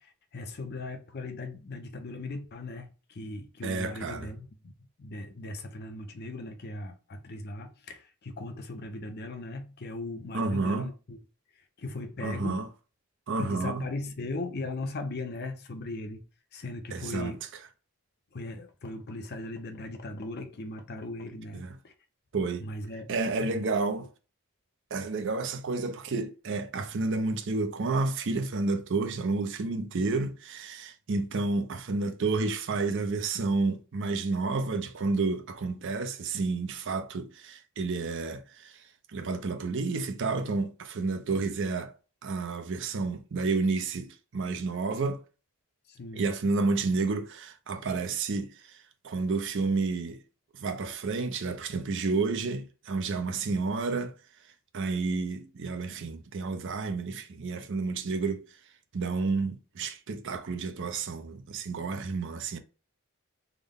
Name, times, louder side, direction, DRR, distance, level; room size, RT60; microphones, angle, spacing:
voice 1, 0.0-4.7 5.0-11.2 11.8-12.6 13.4-16.2 16.5-17.4 18.3-21.9 22.6-23.1 23.4-23.7 45.9-46.3, left 2 dB, 45° left, 0.5 m, -38 dB
voice 2, 3.6-4.3 10.3-10.9 12.2-12.7 13.3-13.9 16.9-17.3 21.5-21.7 22.3-22.7 23.1-24.1 24.9-38.8 39.1-41.9 42.2-45.2 46.1-50.2 50.5-54.1 54.7-58.4 58.9-62.6, right 3 dB, 55° right, 0.5 m, -30 dB
3.5 x 2.1 x 3.5 m
head